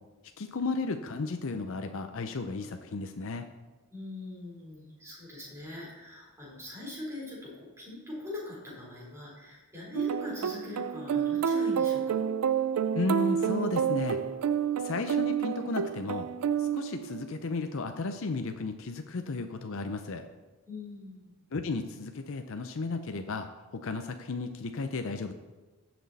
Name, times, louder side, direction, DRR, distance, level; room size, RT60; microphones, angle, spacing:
voice 1, 0.4-3.4 12.9-14.2 14.8-16.3 16.6-20.2 21.5-25.3, left 3 dB, 60° left, 6 dB, 0.6 m, -34 dB
voice 2, 3.9-12.2 20.7-21.4, left 2 dB, 10° right, -5 dB, 3.7 m, -42 dB
sound 1, 9.9-17.4, right 8 dB, 85° right, 0.4 m, -29 dB
15.5 x 6.1 x 4.1 m, 1.2 s
head